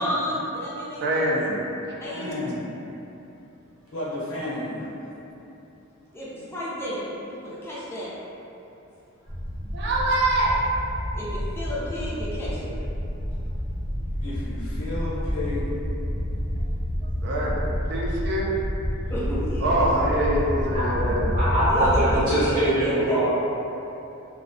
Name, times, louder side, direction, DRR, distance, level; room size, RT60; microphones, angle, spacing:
voice 1, 0.0-1.3 2.0-2.5 6.1-8.1 11.1-12.7 19.1-19.9 21.6-23.2, equal, 10° left, -9 dB, 0.5 m, -31 dB
voice 2, 1.0-1.7 2.1-2.5 9.7-10.6 17.0-17.6 17.9-18.5 19.6-21.3, right 1 dB, 55° right, -3 dB, 0.4 m, -25 dB
voice 3, 2.2-2.8 3.9-4.9 14.2-15.7, left 1 dB, 70° left, -10 dB, 0.9 m, -32 dB
sound 1, 9.3-22.2, equal, 40° left, 0.8 m, -29 dB
voice 4, 20.7-23.2, right 1 dB, 20° right, -15 dB, 0.8 m, -23 dB
2.5 x 2.1 x 2.6 m, 2.9 s
head